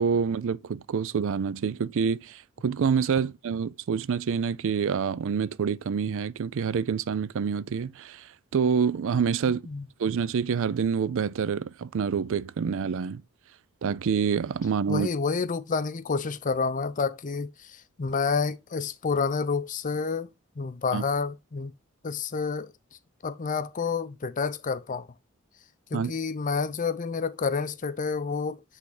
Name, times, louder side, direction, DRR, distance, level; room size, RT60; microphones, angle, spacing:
voice 1, 0.0-9.6 10.0-13.2 13.8-15.1 20.9-21.0 25.9-26.1, right 6 dB, 65° right, 0.4 m, -27 dB
voice 2, 9.4-9.9 14.9-20.3 20.6-21.7 22.0-22.7 23.2-25.1 25.9-28.6, left 5 dB, 35° left, 0.5 m, -29 dB
8.3 x 3.5 x 4.8 m
head